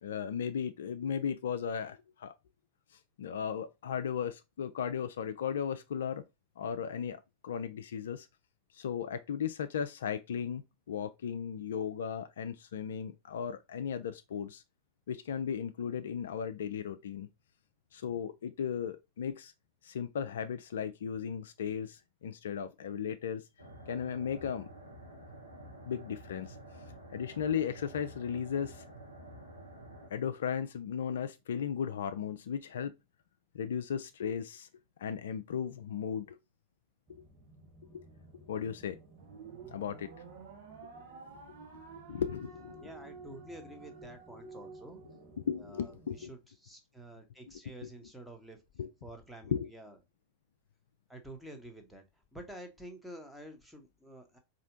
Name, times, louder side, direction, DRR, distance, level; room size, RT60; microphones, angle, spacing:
voice 1, 0.0-2.3 3.2-6.2 6.6-8.3 8.7-10.6 10.9-14.6 15.1-17.3 17.9-19.5 19.8-23.4 23.9-24.7 25.9-26.6 27.1-28.8 30.1-32.9 33.5-34.7 35.0-36.4 37.1-37.3 37.9-38.1 38.5-39.0 39.7-40.1 41.5-41.6 42.1-42.9 45.4-46.3 47.8-47.9 48.8-48.9 49.5-49.7, left 7 dB, 60° left, 0.3 m, -36 dB
sound 1, 23.6-30.1, right 1 dB, 90° right, 0.9 m, -50 dB
sound 2, 37.1-46.3, right 1 dB, 15° right, 1.4 m, -58 dB
sound 3, 39.2-45.7, right 5 dB, 55° right, 0.9 m, -51 dB
voice 2, 42.8-45.0 45.6-48.6 49.0-50.0 51.1-52.0 52.3-54.4, right 1 dB, ahead, 0.9 m, -49 dB
4.2 x 2.8 x 2.5 m
figure-of-eight pair, 90°, 0 cm